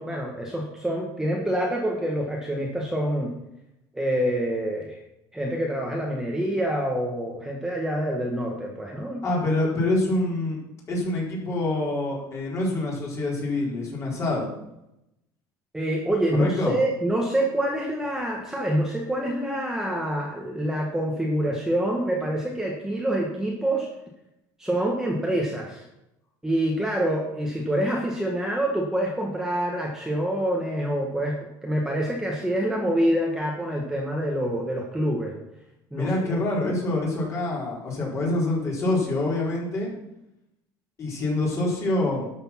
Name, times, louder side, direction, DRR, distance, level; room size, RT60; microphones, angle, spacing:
voice 1, 0.0-3.3 3.9-5.0 5.3-9.2 15.7-23.9 24.6-25.8 26.4-35.3 35.9-36.4, right 1 dB, 5° right, -1 dB, 1.6 m, -26 dB
voice 2, 9.2-10.6 10.9-14.5 16.3-16.7 35.9-39.9 41.0-42.3, left 2 dB, 30° left, -3 dB, 4.4 m, -26 dB
12.0 x 6.9 x 5.9 m, 0.85 s
cardioid pair, 140°, 9 cm